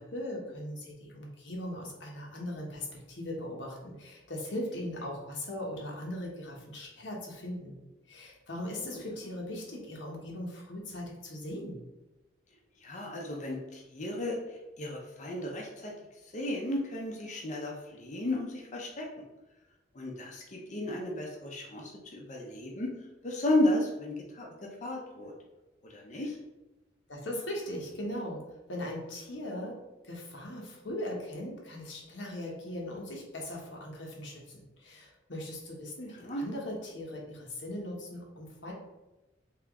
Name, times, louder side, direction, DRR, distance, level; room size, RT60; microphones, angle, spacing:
voice 1, 0.1-7.8 8.1-11.8 27.1-28.4 28.7-29.8 30.0-38.7, left 1 dB, 90° left, -2 dB, 1.0 m, -39 dB
voice 2, 12.8-14.4 14.8-15.9 16.3-19.1 19.9-22.9 23.2-25.3 25.8-26.4 36.2-36.4, left 1 dB, 40° left, -1 dB, 0.5 m, -33 dB
3.4 x 2.8 x 3.5 m, 1.0 s
head